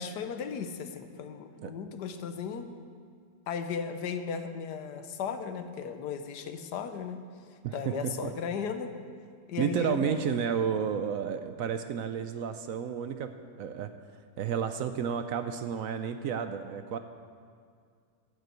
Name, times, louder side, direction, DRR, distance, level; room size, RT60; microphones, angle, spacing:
voice 1, 0.0-2.7 3.5-7.2 7.7-8.9 9.5-10.4, left 6 dB, 80° left, 8 dB, 1.4 m, -36 dB
voice 2, 7.6-8.3 9.6-13.3 13.6-13.9 14.4-17.0, right 7 dB, 70° right, 9 dB, 0.9 m, -31 dB
11.5 x 8.2 x 7.9 m, 2.2 s
omnidirectional pair, 1.7 m